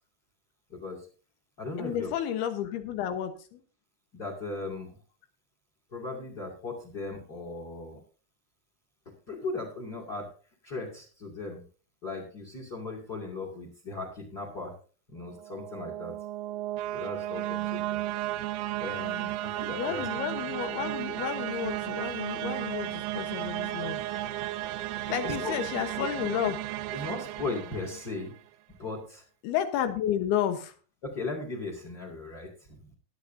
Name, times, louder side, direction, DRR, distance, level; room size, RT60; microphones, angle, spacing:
voice 1, 0.7-1.1 1.6-2.1 4.1-5.0 5.9-8.0 9.1-10.3 10.6-11.7 12.0-14.8 15.1-16.2 16.9-18.0 18.8-20.1 25.0-25.5 26.0-26.1 26.9-28.3 28.8-29.2 31.0-32.9, left 3 dB, 30° left, 3 dB, 2.4 m, -37 dB
voice 2, 1.8-3.6 19.8-24.0 25.1-26.6 29.4-30.7, left 10 dB, 90° left, 8 dB, 3.1 m, -31 dB
sound 1, 15.3-28.4, right 14 dB, 80° right, 2.2 m, -34 dB
20.5 x 8.0 x 2.7 m, 0.37 s
omnidirectional pair, 4.4 m